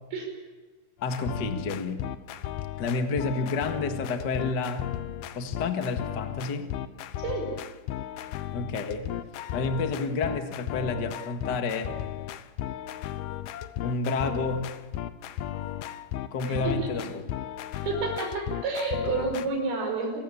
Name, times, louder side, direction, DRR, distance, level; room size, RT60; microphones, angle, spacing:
sound 1, 1.0-19.5, left 12 dB, 85° left, 2.8 m, -35 dB
voice 1, 1.0-2.1 2.8-4.9 5.3-6.6 8.5-9.1 9.5-12.0 13.8-14.7 16.3-17.2, left 3 dB, 45° left, 5 dB, 1.6 m, -30 dB
voice 2, 16.5-16.9 17.8-20.1, right 3 dB, 85° right, 2 dB, 7.4 m, -29 dB
29.0 x 15.5 x 8.6 m, 1.3 s
omnidirectional pair, 4.3 m